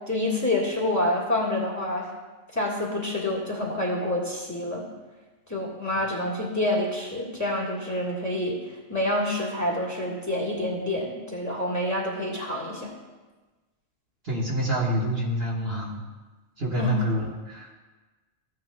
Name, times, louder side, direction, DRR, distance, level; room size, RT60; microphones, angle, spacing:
voice 1, 0.1-2.1 2.5-4.9 5.5-8.6 8.9-13.0 16.8-16.9, left 1 dB, 15° left, -3 dB, 1.7 m, -27 dB
voice 2, 14.2-16.0 16.6-17.7, right 1 dB, 50° right, -3 dB, 1.6 m, -27 dB
15.0 x 9.3 x 2.3 m, 1.3 s
omnidirectional pair, 1.4 m